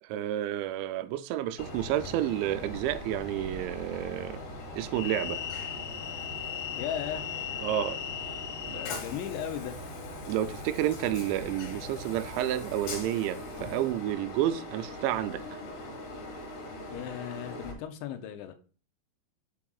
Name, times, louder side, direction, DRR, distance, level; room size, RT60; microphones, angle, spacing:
voice 1, 0.0-4.4 4.8-5.4 7.6-8.0 8.7-8.8 10.3-15.6, right 12 dB, 90° right, 2.8 m, -30 dB
Train, 1.6-17.7, left 4 dB, 65° left, 3.5 m, -39 dB
voice 2, 6.7-7.3 8.7-9.8 16.9-18.5, left 10 dB, 90° left, 3.0 m, -36 dB
7.6 x 7.2 x 2.3 m
omnidirectional pair, 5.1 m